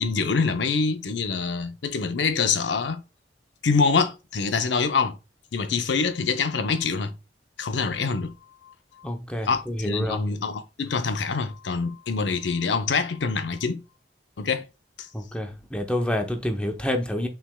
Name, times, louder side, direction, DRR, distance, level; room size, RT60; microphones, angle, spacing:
voice 1, 0.0-3.0 3.6-5.2 5.5-7.1 7.6-8.3 9.4-13.8 14.4-14.6, left 5 dB, 80° left, 0.6 m, -25 dB
voice 2, 9.0-10.2 15.1-17.3, left 1 dB, 5° left, 0.7 m, -28 dB
6.0 x 3.4 x 2.2 m
head